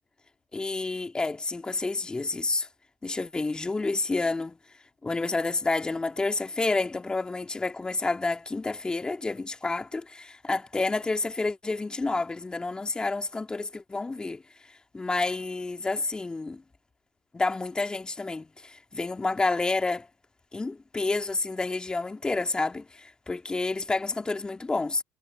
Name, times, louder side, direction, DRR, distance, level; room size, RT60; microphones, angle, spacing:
voice 1, 0.5-2.7 3.0-4.6 5.0-14.4 14.7-16.6 17.3-20.1 20.5-25.0, left 3 dB, 15° left, 2.3 m, -29 dB
hypercardioid pair, 75°, 5 cm